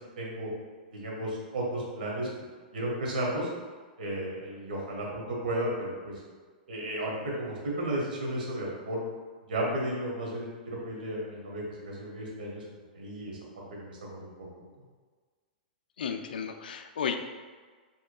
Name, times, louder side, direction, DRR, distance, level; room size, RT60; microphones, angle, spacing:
voice 1, 0.2-0.5 0.9-2.3 2.7-3.5 4.0-6.1 6.7-9.0 9.5-12.6 12.9-14.5, right 1 dB, 75° right, -3 dB, 1.5 m, -34 dB
voice 2, 16.0-17.2, left 7 dB, 80° left, 7 dB, 0.4 m, -33 dB
5.1 x 3.6 x 2.3 m, 1.5 s
hypercardioid pair, 115°, 5 cm